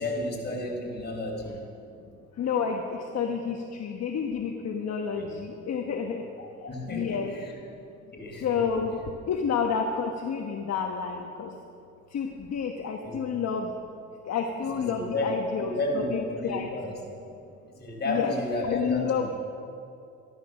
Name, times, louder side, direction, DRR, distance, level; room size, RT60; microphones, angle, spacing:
voice 1, 0.0-1.5 4.9-5.3 6.4-7.5 8.1-8.6 13.0-13.2 14.6-15.3 15.6-17.0 17.7-19.3, left 1 dB, 35° left, -1 dB, 4.3 m, -32 dB
voice 2, 2.4-6.2 6.9-7.3 8.4-8.9 9.3-11.5 12.1-13.7 14.3-16.7 18.1-18.3 18.6-19.3, left 6 dB, 60° left, 2 dB, 1.2 m, -29 dB
14.0 x 12.5 x 6.4 m, 2.6 s
cardioid pair, 90°, 30 cm